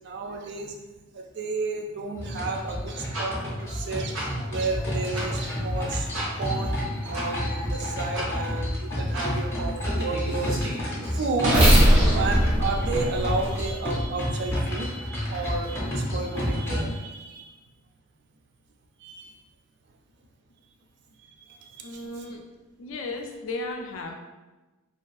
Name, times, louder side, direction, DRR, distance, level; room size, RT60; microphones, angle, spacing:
voice 1, 0.0-0.7 1.1-4.2 4.5-10.5 11.0-11.6 12.1-17.5 19.0-19.3 21.7-22.3, right 3 dB, 55° right, 2 dB, 0.3 m, -32 dB
sound 1, 2.2-17.0, equal, 10° left, 0.5 m, -30 dB
sound 2, 3.1-3.3 4.1-4.2 5.1-5.3 6.1-6.3 7.1-7.3 8.1-8.3 9.1-9.3 9.8-13.7, equal, 90° right, 0.8 m, -22 dB
voice 2, 21.8-22.5 22.8-24.2, left 2 dB, 65° left, 3 dB, 0.3 m, -35 dB
2.3 x 2.3 x 2.5 m, 1.1 s
head